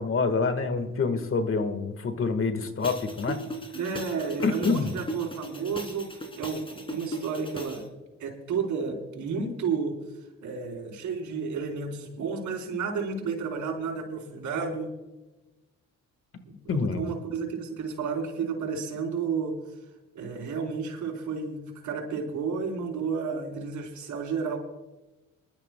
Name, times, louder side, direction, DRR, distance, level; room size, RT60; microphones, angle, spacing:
voice 1, 0.0-3.4 4.4-4.9 16.7-17.1, left 4 dB, 45° left, 9 dB, 1.6 m, -27 dB
sound 1, 2.8-7.8, equal, 15° left, 2.8 m, -38 dB
voice 2, 3.7-7.9 8.2-10.0 10.4-14.9 16.4-19.6 20.1-24.6, right 5 dB, 75° right, 1 dB, 3.8 m, -32 dB
26.0 x 12.5 x 2.2 m, 1.1 s
cardioid pair, 90°, 30 cm